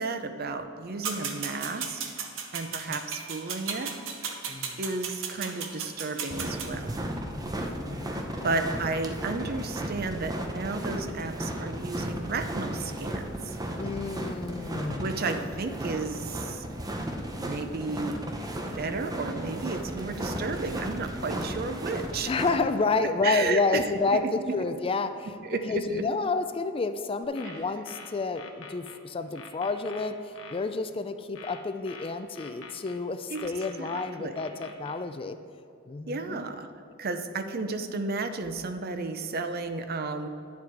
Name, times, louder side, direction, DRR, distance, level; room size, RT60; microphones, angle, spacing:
voice 1, 0.0-2.0 2.5-3.9 4.8-6.9 8.4-13.6 15.0-16.6 17.4-18.2 18.7-22.3 22.6-22.7 23.2-23.9 24.1-24.6 25.4-25.9 27.5-27.6 33.3-33.4 33.8-34.4 36.1-36.7 37.0-40.3, right 3 dB, 50° right, 8 dB, 0.6 m, -33 dB
sound 1, 1.0-6.7, right 6 dB, 70° right, 1.0 m, -35 dB
voice 2, 4.5-4.8 7.3-8.6 13.8-15.1 21.4-21.5 22.3-25.3 25.7-30.2 30.5-35.4 35.9-36.5, left 3 dB, 25° left, 10 dB, 0.4 m, -30 dB
sound 2, 6.3-22.6, right 1 dB, 20° right, 0.8 m, -35 dB
sound 3, 27.2-29.0 29.4-30.6 31.4-33.0 33.4-35.0, left 4 dB, 80° left, 0.9 m, -45 dB
10.5 x 7.4 x 4.6 m, 2.6 s
head